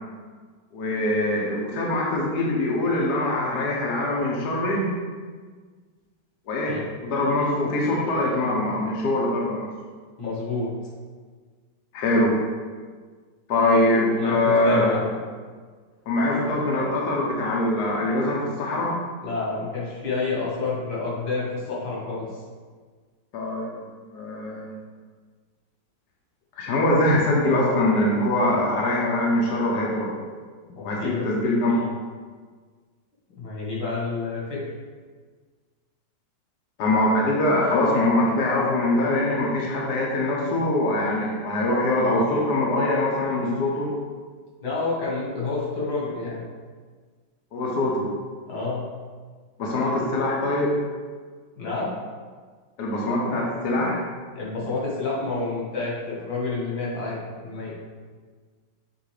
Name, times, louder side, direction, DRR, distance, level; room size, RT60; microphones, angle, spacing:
voice 1, 0.7-4.9 6.5-6.7 7.0-9.7 11.9-12.4 13.5-15.0 16.1-18.9 23.3-23.8 24.1-24.7 26.6-30.1 30.8-31.9 36.8-43.9 47.5-48.1 49.6-50.8 52.8-54.0, left 1 dB, 60° left, -3 dB, 1.4 m, -23 dB
voice 2, 10.2-10.7 14.1-15.0 19.2-22.4 30.7-31.4 33.4-34.6 44.6-46.4 48.5-48.9 51.6-51.9 54.3-57.7, left 3 dB, 85° left, -6 dB, 2.5 m, -29 dB
6.5 x 3.3 x 4.9 m, 1.5 s
omnidirectional pair, 2.1 m